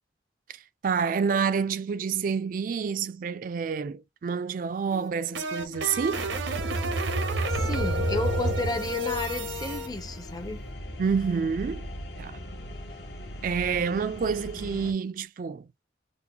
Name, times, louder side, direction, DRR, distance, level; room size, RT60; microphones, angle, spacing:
voice 1, 0.8-6.3 11.0-11.9 12.2-12.4 13.4-15.7, right 6 dB, 45° right, 0.3 m, -28 dB
sound 1, 4.9-9.9, right 1 dB, 85° right, 0.8 m, -29 dB
sound 2, 7.4-14.9, equal, 65° left, 1.0 m, -39 dB
voice 2, 7.5-10.6, left 2 dB, 20° left, 0.6 m, -32 dB
3.6 x 2.1 x 2.9 m
head